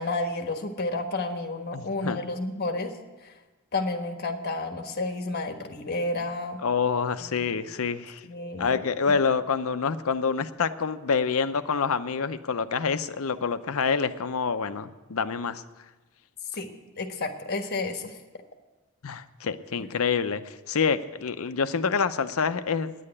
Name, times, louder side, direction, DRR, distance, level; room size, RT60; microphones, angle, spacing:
voice 1, 0.0-2.9 3.2-3.3 3.7-6.6 7.2-7.6 8.3-8.7 9.1-9.2 16.5-16.7 17.0-18.2, left 2 dB, 50° left, 5 dB, 1.4 m, -31 dB
voice 2, 1.7-2.2 6.6-8.3 8.6-15.6 19.0-22.9, left 5 dB, 70° left, 11 dB, 0.6 m, -27 dB
9.9 x 8.7 x 9.8 m, 1.2 s
head